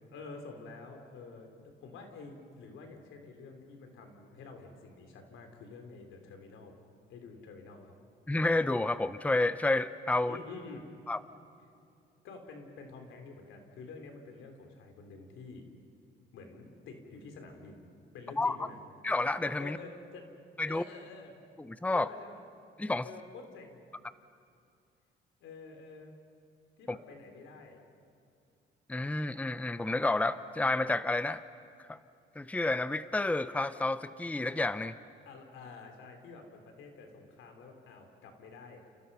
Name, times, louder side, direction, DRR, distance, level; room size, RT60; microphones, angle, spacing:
voice 1, 0.1-6.8 7.1-8.0 10.2-10.9 12.2-15.7 16.3-18.8 19.6-20.2 20.7-21.4 21.9-22.4 23.0-23.8 25.4-26.1 26.8-27.8 35.2-38.8, left 4 dB, 85° left, 4 dB, 3.9 m, -49 dB
voice 2, 8.3-10.4 11.1-11.2 18.4-18.6 19.0-19.8 20.6-20.8 21.6-22.1 22.8-23.1 26.9-27.0 28.9-31.4 31.9-32.0 32.4-35.0, left 2 dB, 5° left, 13 dB, 0.7 m, -30 dB
30.0 x 30.0 x 5.7 m, 2.4 s
cardioid pair, 90°, 20 cm